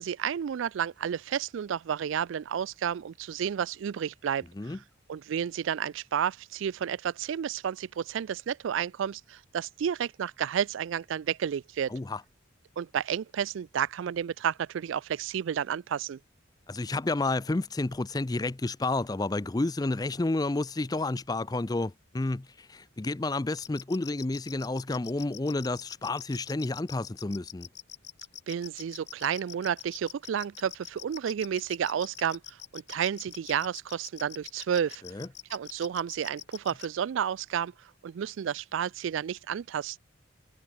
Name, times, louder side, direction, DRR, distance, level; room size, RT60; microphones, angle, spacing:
voice 1, 0.0-4.8 5.1-11.9 12.8-16.2 28.5-35.0 35.5-37.7 38.0-40.0, right 8 dB, 70° right, 0.3 m, -31 dB
voice 2, 11.9-12.2 16.7-27.7 35.0-35.3, left 2 dB, 20° left, 0.4 m, -30 dB
sound 1, 23.6-36.9, left 12 dB, 55° left, 2.1 m, -44 dB
head